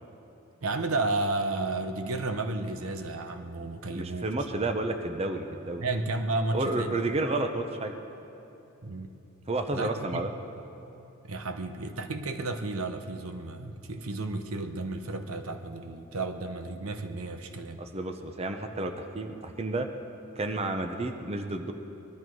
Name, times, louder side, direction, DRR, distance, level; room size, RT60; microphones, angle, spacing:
voice 1, 0.6-4.3 5.8-7.0 8.8-9.1 9.7-10.2 11.2-17.8, right 2 dB, 80° right, 7 dB, 0.9 m, -32 dB
voice 2, 3.9-5.8 6.5-7.9 9.5-10.3 17.8-19.9 20.4-21.7, right 2 dB, 30° right, 6 dB, 0.7 m, -31 dB
20.0 x 12.5 x 4.7 m, 2.9 s
head